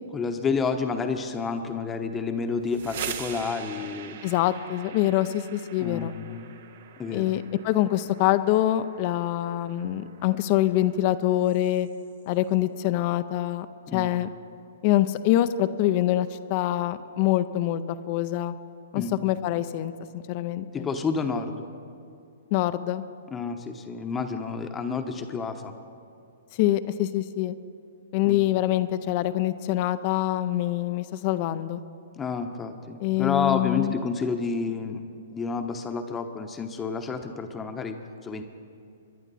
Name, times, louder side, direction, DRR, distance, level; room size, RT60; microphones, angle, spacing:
voice 1, 0.1-4.2 5.8-6.5 7.0-7.3 13.9-14.1 19.0-19.2 20.7-21.7 23.3-25.7 28.2-28.4 32.2-35.0 35.3-38.0 38.2-38.4, left 5 dB, 15° left, 6 dB, 0.9 m, -30 dB
sound 1, 2.5-12.3, right 7 dB, 60° right, 1.0 m, -43 dB
voice 2, 4.2-6.1 7.1-11.9 12.3-13.7 13.9-14.3 14.8-18.5 18.9-20.9 22.5-23.0 26.6-27.5 28.1-31.8 33.0-33.9, left 14 dB, 40° left, 12 dB, 0.5 m, -25 dB
23.5 x 11.0 x 4.1 m, 2.4 s
hypercardioid pair, 125°, 0 cm